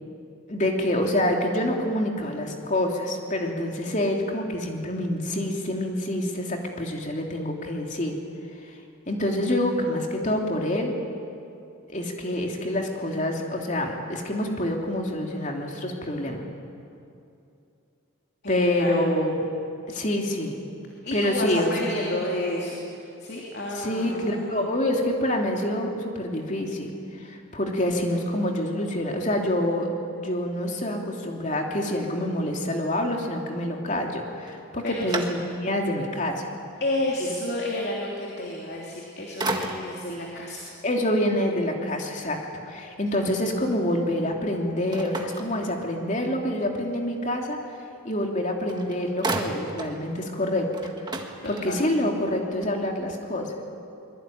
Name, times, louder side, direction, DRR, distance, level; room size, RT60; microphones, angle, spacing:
voice 1, 0.5-8.1 9.1-10.9 11.9-16.4 18.5-19.5 19.9-20.6 21.1-21.9 23.7-26.9 27.2-29.9 30.1-36.5 40.8-42.4 42.7-47.6 48.0-51.3 51.6-53.5, left 1 dB, 35° left, 1 dB, 3.1 m, -27 dB
voice 2, 18.4-19.1 21.0-24.6 34.8-35.1 36.8-40.6 51.4-51.8, left 1 dB, 50° left, -2 dB, 3.1 m, -31 dB
sound 1, 34.4-35.9 36.4-36.5 38.8-39.1 39.4-40.1 44.9-46.2 48.3-48.4 48.7-50.0 50.4-50.5 50.7-52.0, right 2 dB, 20° right, 1.6 m, -33 dB
24.0 x 22.5 x 9.3 m, 2.6 s
head